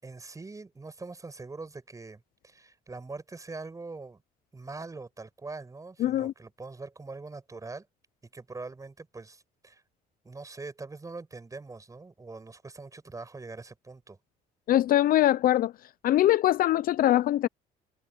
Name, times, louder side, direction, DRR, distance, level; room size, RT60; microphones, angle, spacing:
voice 1, 0.0-4.2 4.5-7.9 8.3-9.8 10.2-14.2, right 3 dB, 20° right, 6.5 m, -43 dB
voice 2, 6.0-6.3 14.7-15.7 16.0-17.5, left 13 dB, 60° left, 0.5 m, -22 dB
cardioid pair, 110°, 17 cm